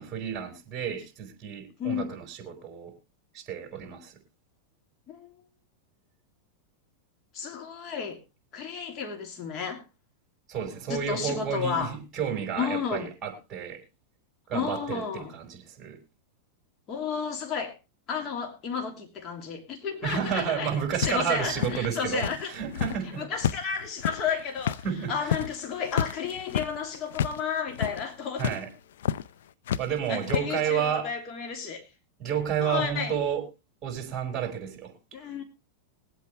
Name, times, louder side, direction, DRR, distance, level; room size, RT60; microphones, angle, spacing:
voice 1, 0.0-2.9 3.3-4.1 10.5-13.8 14.5-16.0 20.0-23.3 24.8-25.3 28.4-28.7 29.8-31.1 32.2-33.4 33.8-34.9, right 8 dB, 25° right, 5.2 m, -31 dB
voice 2, 1.8-2.2 5.1-5.3 7.3-8.2 8.5-9.8 10.9-11.9 12.5-13.1 14.5-15.3 16.9-17.8 18.1-22.5 23.2-24.8 25.1-28.6 30.1-31.9 32.6-33.2 35.1-35.4, left 6 dB, 35° left, 2.8 m, -32 dB
sound 1, 21.0-23.0 23.4-27.4 27.7-28.1 28.4-28.6 29.0-29.3 29.7-30.4, left 9 dB, 80° left, 0.6 m, -30 dB
22.0 x 8.2 x 3.3 m
hypercardioid pair, 125°, 0 cm